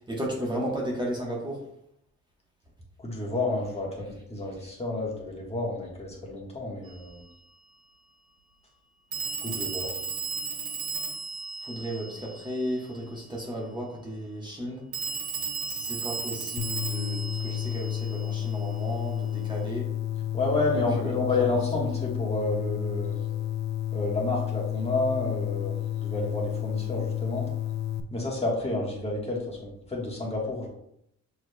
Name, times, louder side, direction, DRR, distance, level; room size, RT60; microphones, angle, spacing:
voice 1, 0.1-1.6 11.6-14.8 15.7-20.3 20.7-21.2, equal, 15° right, -3 dB, 1.1 m, -34 dB
voice 2, 3.0-7.2 9.4-10.0 20.3-23.2 23.9-27.5 28.1-30.7, left 2 dB, 20° left, -3 dB, 1.3 m, -30 dB
Telephone, 6.9-7.0 9.1-12.8 14.9-18.6, right 5 dB, 70° right, 1.2 m, -35 dB
sound 1, 16.6-28.0, left 12 dB, 65° left, 0.5 m, -31 dB
6.2 x 3.2 x 2.2 m, 0.75 s
cardioid pair, 90°, 30 cm